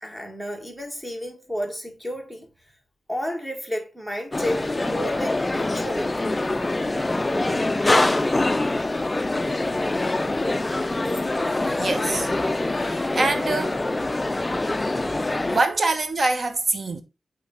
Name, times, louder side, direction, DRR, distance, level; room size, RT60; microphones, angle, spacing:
voice 1, 0.0-2.5 3.1-6.3, equal, 5° right, 1.4 m, -32 dB
sound 1, 4.3-15.6, left 2 dB, 20° left, 0.3 m, -24 dB
voice 2, 11.8-12.3 12.8-13.8 15.5-17.0, right 2 dB, 40° right, 1.0 m, -24 dB
8.3 x 3.2 x 3.8 m
wide cardioid pair, 145°, 0 cm